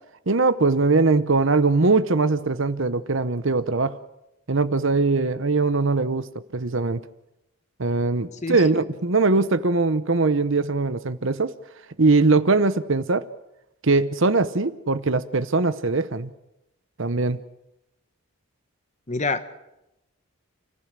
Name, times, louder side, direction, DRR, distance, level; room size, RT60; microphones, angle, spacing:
voice 1, 0.3-4.0 4.5-6.3 6.5-7.0 7.8-11.5 12.0-13.2 13.8-16.3 17.0-17.4, right 3 dB, 60° right, 14 dB, 0.9 m, -21 dB
voice 2, 8.4-8.8 19.1-19.4, left 3 dB, 30° left, 10 dB, 1.1 m, -27 dB
29.5 x 15.0 x 7.5 m, 0.90 s
head